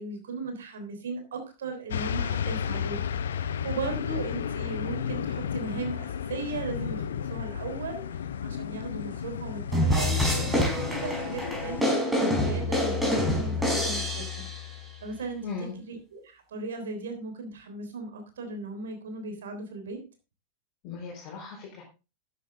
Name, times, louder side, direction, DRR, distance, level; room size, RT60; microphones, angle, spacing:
voice 1, 0.0-8.0 8.4-15.4 15.8-20.0, right 3 dB, 65° right, 6 dB, 3.5 m, -37 dB
sound 1, 1.9-11.8, left 8 dB, 65° left, 0.7 m, -33 dB
sound 2, 9.7-14.8, left 1 dB, 5° right, 4.8 m, -26 dB
voice 2, 15.4-15.8 20.8-21.8, left 5 dB, 40° left, -3 dB, 4.2 m, -37 dB
13.0 x 9.0 x 3.7 m, 0.30 s
figure-of-eight pair, 90°, 0 cm